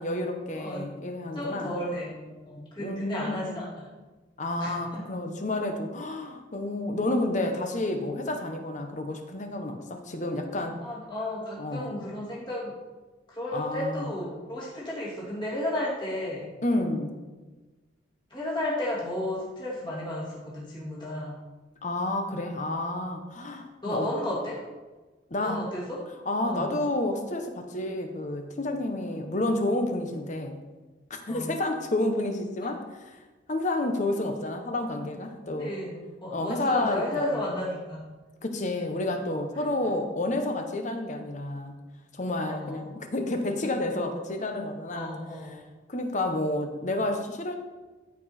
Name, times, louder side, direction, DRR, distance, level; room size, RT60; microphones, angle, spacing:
voice 1, 0.0-1.8 2.8-3.7 4.4-10.8 11.6-12.0 13.5-14.2 16.6-17.2 21.8-24.1 25.3-25.6 26.3-30.6 31.1-33.1 33.5-35.7 36.3-37.4 38.4-41.8 42.1-45.1 45.5-45.6 45.9-47.6, left 2 dB, 40° left, 5 dB, 1.0 m, -30 dB
voice 2, 0.5-0.9 1.3-3.9 4.6-5.0 10.8-12.7 13.3-16.5 18.3-21.4 23.8-24.7 25.4-26.0 26.4-26.7 31.3-31.5 35.6-38.0 42.5-42.8 44.9-45.6, left 1 dB, 25° left, -6 dB, 2.4 m, -33 dB
14.0 x 4.8 x 4.3 m, 1.2 s
head